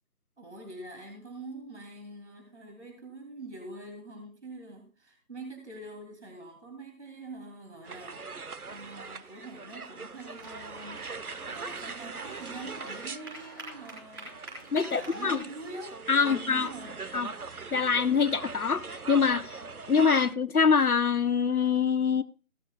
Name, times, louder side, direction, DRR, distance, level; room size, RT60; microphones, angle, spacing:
voice 1, 0.4-11.1 11.5-17.1, right 2 dB, 50° right, 2.7 m, -45 dB
sound 1, 7.9-20.3, right 4 dB, 85° right, 1.0 m, -41 dB
sound 2, 10.4-15.4, right 2 dB, 15° right, 3.8 m, -46 dB
voice 2, 14.7-15.4 16.1-16.7 17.1-17.3 17.7-19.6 19.9-22.2, left 6 dB, 90° left, 0.9 m, -24 dB
16.5 x 12.0 x 2.3 m
figure-of-eight pair, 170°, 43 cm